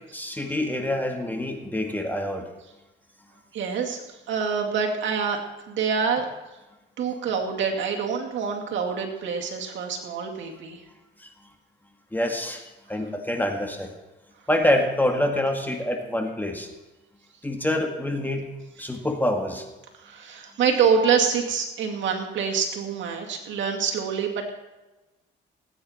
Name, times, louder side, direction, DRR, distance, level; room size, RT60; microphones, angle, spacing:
voice 1, 0.1-2.4 12.1-12.6 12.9-13.9 14.5-16.7 17.4-19.7, left 1 dB, 10° left, 3 dB, 1.9 m, -26 dB
voice 2, 3.5-5.4 5.7-6.3 7.0-10.8 20.0-24.5, right 6 dB, 70° right, 1 dB, 2.3 m, -26 dB
19.0 x 9.1 x 4.4 m, 1.1 s
cardioid pair, 90°, 20 cm